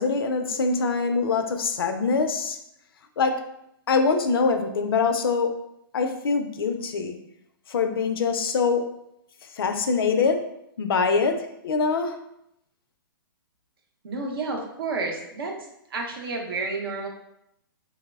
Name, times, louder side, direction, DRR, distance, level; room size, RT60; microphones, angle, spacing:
voice 1, 0.0-2.6 3.2-3.4 3.9-5.5 5.9-7.2 7.7-8.8 9.5-10.4 10.8-12.2, left 4 dB, 80° left, 7 dB, 0.4 m, -24 dB
voice 2, 14.0-15.6 15.9-17.1, right 3 dB, 75° right, 1 dB, 0.6 m, -30 dB
3.1 x 2.0 x 2.2 m, 0.79 s
hypercardioid pair, 135°, 12 cm